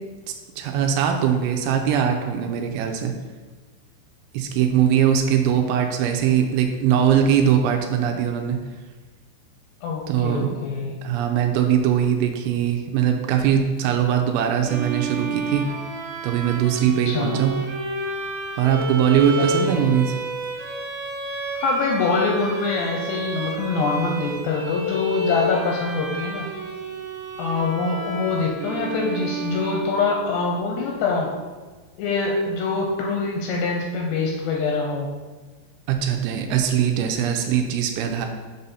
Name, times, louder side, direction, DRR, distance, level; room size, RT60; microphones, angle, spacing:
voice 1, 0.6-3.1 4.3-8.6 10.1-10.5 11.0-15.7 16.2-17.5 18.6-20.2 35.9-38.3, right 9 dB, 85° right, 4 dB, 2.9 m, -21 dB
voice 2, 9.8-10.9 17.1-17.4 19.4-19.8 21.6-26.5 27.4-31.3 32.0-35.1, left 3 dB, 80° left, 0 dB, 2.5 m, -24 dB
sound 1, 14.6-30.3, right 2 dB, 65° right, 2.1 m, -30 dB
7.8 x 4.1 x 5.5 m, 1.3 s
omnidirectional pair, 5.5 m